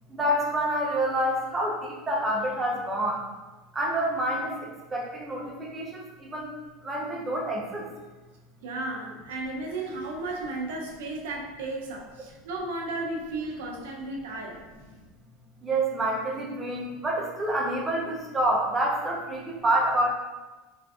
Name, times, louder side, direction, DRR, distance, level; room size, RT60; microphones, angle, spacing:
voice 1, 0.1-1.8 2.1-3.2 3.7-4.5 4.9-6.5 6.8-7.9 15.6-20.1, right 1 dB, 20° right, -2 dB, 0.5 m, -27 dB
voice 2, 8.6-14.6, right 2 dB, 85° right, 0 dB, 0.5 m, -34 dB
3.4 x 2.5 x 2.3 m, 1.2 s
supercardioid pair, 130°, 0 cm